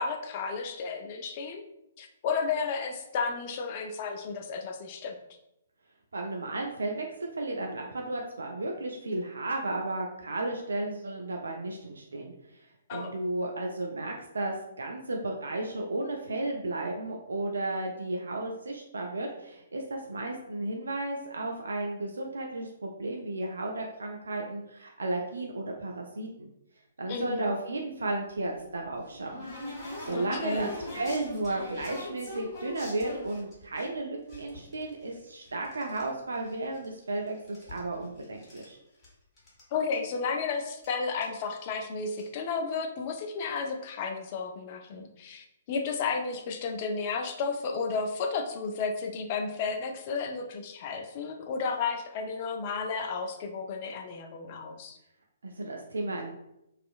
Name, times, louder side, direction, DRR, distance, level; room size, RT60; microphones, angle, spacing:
voice 1, 0.0-1.6 2.0-5.1 12.9-13.1 27.1-27.5 30.1-30.7 39.7-55.0, left 5 dB, 40° left, 4 dB, 0.4 m, -33 dB
voice 2, 6.1-12.3 12.9-26.5 27.0-29.4 30.0-38.8 55.4-56.3, right 2 dB, 70° right, 2 dB, 0.3 m, -34 dB
sound 1, 28.4-33.8 34.3-36.1 36.3-37.1 37.4-38.7 39.0-39.1 39.4-39.6 39.9-40.0 40.8-40.9 41.2-41.4 42.0-42.3, left 1 dB, 15° left, 1.3 m, -42 dB
2.6 x 2.4 x 2.3 m, 0.83 s
figure-of-eight pair, 125°, 0 cm